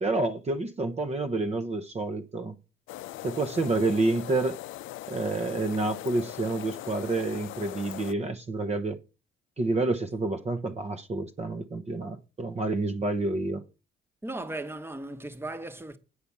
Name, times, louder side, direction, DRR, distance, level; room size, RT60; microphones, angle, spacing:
voice 1, 0.0-2.6 3.2-4.6 5.1-9.0 9.6-13.6, right 2 dB, 35° right, 1.0 m, -29 dB
sound 1, 2.9-8.1, left 16 dB, 85° left, 0.4 m, -40 dB
voice 2, 14.2-16.0, right 2 dB, 10° right, 1.2 m, -37 dB
9.7 x 5.1 x 7.2 m
cardioid pair, 90°, 20 cm